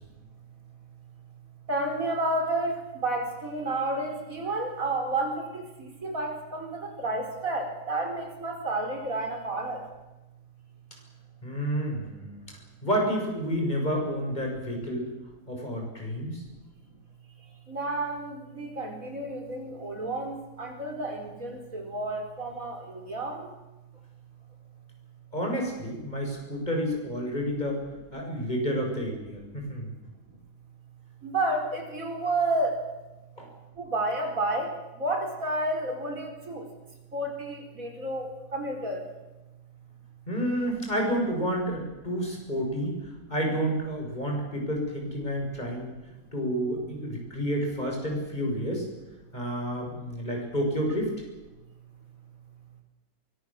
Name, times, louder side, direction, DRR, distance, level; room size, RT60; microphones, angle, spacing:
voice 1, 1.7-9.8 17.7-23.4 31.2-32.8 33.8-34.7 35.0-36.7 37.1-39.0, right 2 dB, 65° right, 4 dB, 4.9 m, -31 dB
voice 2, 11.4-12.4 12.8-15.1 15.5-16.4 25.3-27.8 28.1-29.9 33.4-33.5 40.3-45.9 46.3-48.9 49.3-51.1, equal, 30° left, 1 dB, 7.4 m, -30 dB
24.0 x 23.0 x 7.5 m, 1.1 s
omnidirectional pair, 1.5 m